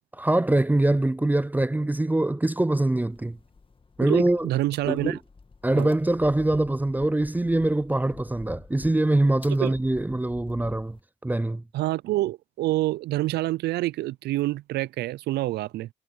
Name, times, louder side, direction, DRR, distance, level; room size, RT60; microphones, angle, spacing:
voice 1, 0.2-3.4 4.0-4.5 4.9-5.2 5.6-11.0 11.2-11.6, right 1 dB, 10° right, 0.5 m, -23 dB
sound 1, 3.1-11.0, left 4 dB, 30° left, 1.7 m, -49 dB
voice 2, 4.0-5.2 5.8-5.9 9.6-9.7 11.7-15.9, right 16 dB, 75° right, 0.4 m, -27 dB
supercardioid pair, 65°, 17 cm